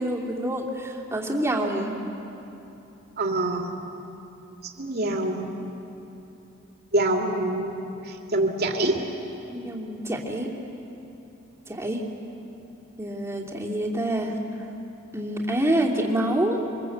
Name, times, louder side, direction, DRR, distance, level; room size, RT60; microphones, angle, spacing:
voice 1, 0.0-2.0 9.5-10.5 11.7-12.0 13.0-14.3 15.1-16.6, right 1 dB, 15° right, -1 dB, 2.7 m, -27 dB
voice 2, 3.2-3.7 4.8-5.5 6.9-9.0, right 2 dB, 50° right, 1 dB, 2.7 m, -25 dB
27.0 x 23.0 x 8.0 m, 3.0 s
head